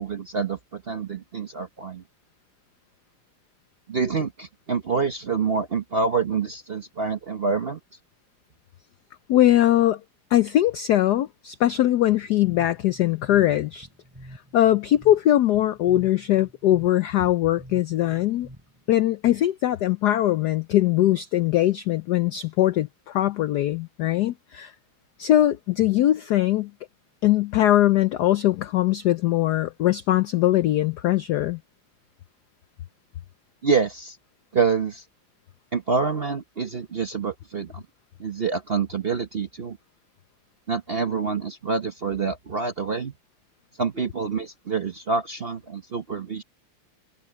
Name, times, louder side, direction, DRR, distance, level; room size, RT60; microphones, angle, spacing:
voice 1, 0.0-2.0 3.9-7.8 33.6-34.2 34.5-35.0 35.7-37.8 38.2-39.8 40.7-43.1 43.8-46.4, right 5 dB, 45° right, 0.8 m, -27 dB
voice 2, 9.3-10.0 10.3-13.9 14.5-18.5 18.9-24.7 25.2-26.7 27.2-31.6, left 13 dB, 85° left, 0.9 m, -21 dB
sound 1, 12.1-19.0, right 1 dB, 10° right, 3.9 m, -48 dB
omnidirectional pair, 2.4 m